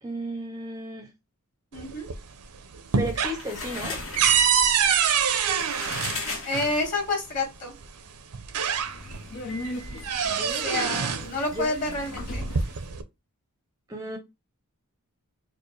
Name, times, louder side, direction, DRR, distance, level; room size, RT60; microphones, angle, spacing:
voice 1, 0.0-1.1 2.9-4.0 10.3-11.2 11.5-11.7 13.9-14.2, right 1 dB, 15° right, 0.5 m, -34 dB
voice 2, 1.7-2.1 6.4-7.8 10.6-12.5, left 2 dB, 35° left, 1.7 m, -29 dB
sound 1, 1.8-2.4 2.7-6.7 7.8-7.9 8.3-9.3 9.6-11.3 12.2-13.0, right 7 dB, 85° right, 0.6 m, -25 dB
sound 2, 2.9-7.1, left 3 dB, 60° left, 1.3 m, -36 dB
Subway metro underground, 8.6-12.9, left 1 dB, 85° left, 0.9 m, -38 dB
4.5 x 2.1 x 3.1 m
head